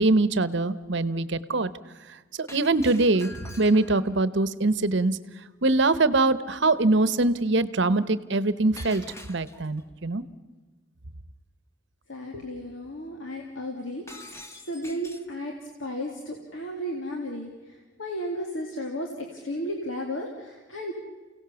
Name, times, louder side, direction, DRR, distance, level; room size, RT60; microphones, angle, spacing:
voice 1, 0.0-1.7 2.4-5.2 5.6-10.2, right 2 dB, 60° right, 15 dB, 1.0 m, -23 dB
Shatter, 2.5-4.1 8.8-9.8 14.1-15.3, left 1 dB, 15° left, 1.3 m, -45 dB
voice 2, 12.1-15.5 15.8-20.9, equal, 70° left, 1 dB, 2.4 m, -34 dB
30.0 x 17.5 x 7.0 m, 1.3 s
head